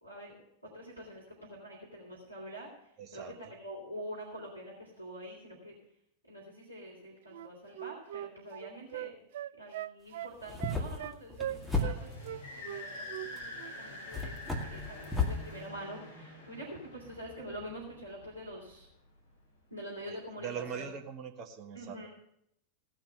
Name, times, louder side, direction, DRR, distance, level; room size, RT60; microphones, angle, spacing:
voice 1, 0.0-0.4 0.7-2.7 3.1-5.8 6.3-9.1 9.6-12.1 12.5-13.1 13.8-18.9 19.7-20.8 21.7-22.1, equal, 90° left, -5 dB, 3.5 m, -45 dB
voice 2, 3.0-3.3 20.1-22.1, right 7 dB, 35° right, 5 dB, 1.5 m, -42 dB
Wind instrument woodwind instrument, 7.3-12.0 12.2-13.3 13.6-13.8, right 13 dB, 55° right, 0.4 m, -40 dB
sound 1, 10.4-12.4 13.4-13.5 14.1-15.5, left 3 dB, ahead, 2.2 m, -34 dB
sound 2, 11.6-18.9, left 2 dB, 60° left, 5.9 m, -47 dB
17.5 x 5.9 x 6.9 m, 0.76 s
figure-of-eight pair, 90°, 0 cm